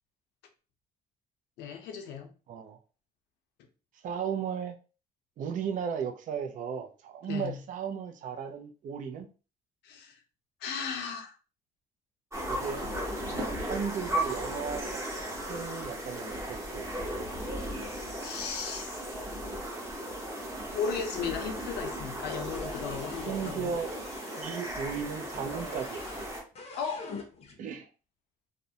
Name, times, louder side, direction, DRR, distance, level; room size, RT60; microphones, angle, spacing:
voice 1, 1.6-2.3 7.3-7.5 9.8-10.2 10.6-11.3 12.9-13.0 18.2-18.9 20.7-23.7 26.7-27.1, left 6 dB, 80° left, 0.6 m, -36 dB
voice 2, 2.5-2.8 4.0-4.8 5.4-9.3 12.5-12.9 13.4-15.1 15.4-16.9 23.3-23.9 24.3-26.3 27.6-27.9, right 7 dB, 50° right, 0.5 m, -35 dB
sound 1, 12.3-26.4, right 1 dB, 15° right, 0.8 m, -36 dB
sound 2, 22.3-24.5 25.3-26.3 26.5-27.6, left 3 dB, 35° left, 0.6 m, -45 dB
2.4 x 2.0 x 2.7 m
cardioid pair, 110°, 17 cm